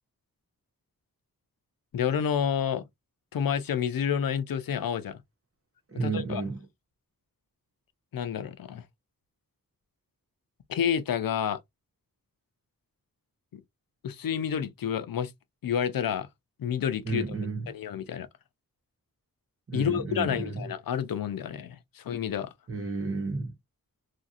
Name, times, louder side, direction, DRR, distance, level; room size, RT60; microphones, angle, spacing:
voice 1, 1.9-2.8 3.3-5.2 5.9-6.4 8.1-8.8 10.7-11.6 13.5-13.6 14.0-15.3 15.6-16.3 16.6-17.3 17.7-18.3 19.7-22.5, left 8 dB, 80° left, 0.5 m, -29 dB
voice 2, 5.9-6.7 17.0-17.7 19.7-20.7 22.7-23.5, right 4 dB, 40° right, 1.1 m, -32 dB
2.8 x 2.5 x 2.7 m
wide cardioid pair, 65°, 34 cm